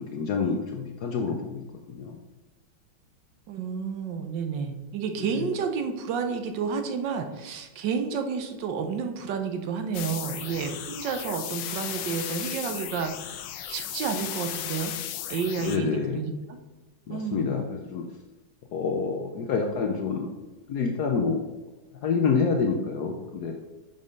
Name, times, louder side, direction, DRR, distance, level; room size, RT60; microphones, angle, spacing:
voice 1, 0.0-1.6 1.9-2.2 5.2-5.3 15.6-16.2 17.1-18.0 18.7-20.3 20.7-21.4 22.0-23.5, left 5 dB, 65° left, 3 dB, 1.2 m, -27 dB
voice 2, 3.5-14.9 15.3-16.6 17.1-17.5, right 6 dB, 75° right, 6 dB, 1.4 m, -31 dB
sound 1, 9.9-15.8, left 11 dB, 85° left, 1.4 m, -35 dB
6.5 x 5.6 x 5.2 m, 1.1 s
omnidirectional pair, 2.1 m